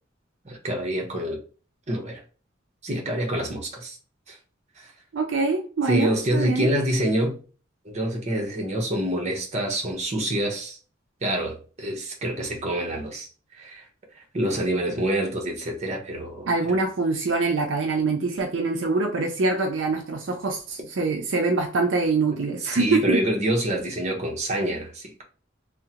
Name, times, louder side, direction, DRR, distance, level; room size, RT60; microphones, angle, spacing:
voice 1, 0.4-1.4 1.9-2.2 2.8-4.0 4.3-4.4 5.9-7.4 7.8-10.8 11.2-13.3 13.5-13.8 14.3-16.5 22.6-25.2, right 1 dB, 35° right, 0.8 m, -26 dB
voice 2, 5.1-6.7 16.5-23.2, right 3 dB, 70° right, 0.5 m, -24 dB
3.5 x 2.1 x 2.8 m
head